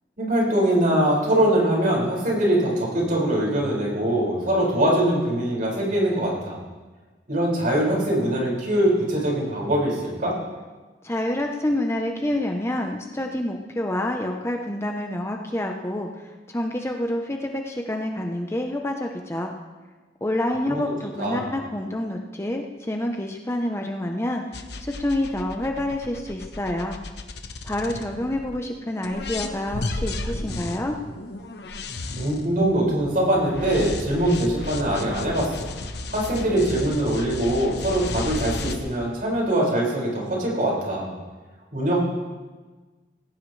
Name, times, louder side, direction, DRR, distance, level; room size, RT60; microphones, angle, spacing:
voice 1, 0.2-6.6 7.3-10.4 20.7-20.8 21.2-21.5 32.2-35.7 36.1-41.1 41.7-42.0, right 1 dB, 50° right, -3 dB, 5.8 m, -22 dB
voice 2, 11.0-19.5 20.2-27.0 27.6-31.0, left 1 dB, 15° left, 2 dB, 0.8 m, -28 dB
sound 1, 24.5-28.6 29.0-38.8, left 2 dB, 70° left, 1.1 m, -34 dB
18.0 x 16.0 x 3.3 m, 1.3 s
head